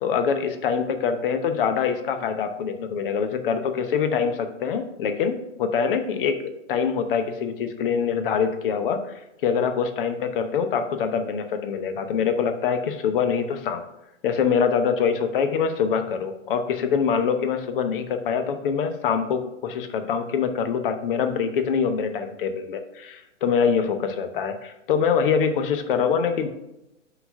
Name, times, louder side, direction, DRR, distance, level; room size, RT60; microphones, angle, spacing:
voice 1, 0.0-6.4 6.7-9.1 9.4-13.8 14.2-26.5, left 6 dB, 45° left, 8 dB, 0.8 m, -24 dB
5.6 x 4.1 x 5.6 m, 0.89 s
figure-of-eight pair, 125°, 38 cm